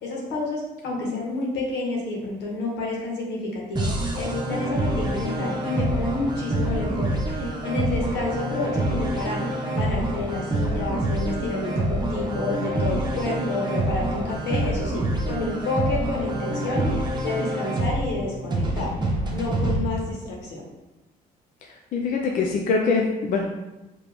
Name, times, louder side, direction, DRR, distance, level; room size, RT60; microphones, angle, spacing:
voice 1, 0.0-18.9 19.3-20.7, left 2 dB, 90° left, -3 dB, 1.5 m, -30 dB
sound 1, 3.8-19.8, right 1 dB, 25° right, 0.9 m, -26 dB
voice 2, 21.6-23.5, left 4 dB, 50° left, 1 dB, 0.6 m, -24 dB
4.9 x 3.0 x 3.5 m, 1.0 s
cardioid pair, 110°, 17 cm